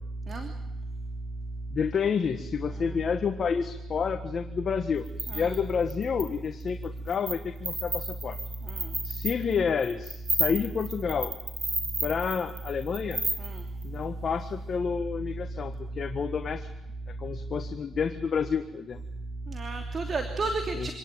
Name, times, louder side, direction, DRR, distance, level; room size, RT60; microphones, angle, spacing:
voice 1, 1.7-5.1 5.3-8.4 9.0-11.3 12.0-13.2 13.8-16.7 17.1-19.0 20.7-20.9, left 6 dB, 50° left, 6 dB, 1.6 m, -29 dB
sound 1, 5.1-6.3 6.8-7.4 7.6-13.8, right 2 dB, 25° right, 4.0 m, -32 dB
voice 2, 5.3-5.6 8.6-8.9 13.4-13.6 19.5-20.9, right 3 dB, 40° right, 5 dB, 2.9 m, -32 dB
26.0 x 18.5 x 9.0 m, 0.91 s
cardioid pair, 90°, 0 cm